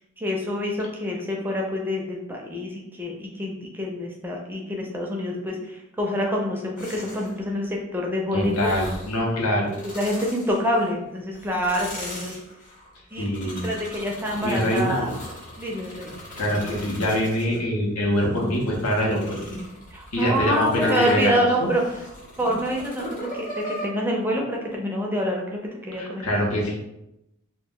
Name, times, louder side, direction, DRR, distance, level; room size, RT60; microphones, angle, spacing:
voice 1, 0.2-8.7 9.9-12.3 13.1-15.1 15.6-16.1 19.9-21.8 22.4-25.6 25.9-26.4, equal, 10° right, -1 dB, 0.4 m, -27 dB
sound 1, 6.8-7.4 8.4-9.2 9.6-10.9 11.3-17.6 18.2-23.9, left 1 dB, 35° left, 0.7 m, -37 dB
voice 2, 8.3-9.7 13.2-13.7 14.4-15.1 16.3-19.4 20.1-21.3 21.6-21.7 25.9-26.8, equal, 85° left, -1 dB, 0.7 m, -24 dB
2.4 x 2.1 x 3.6 m, 0.87 s
head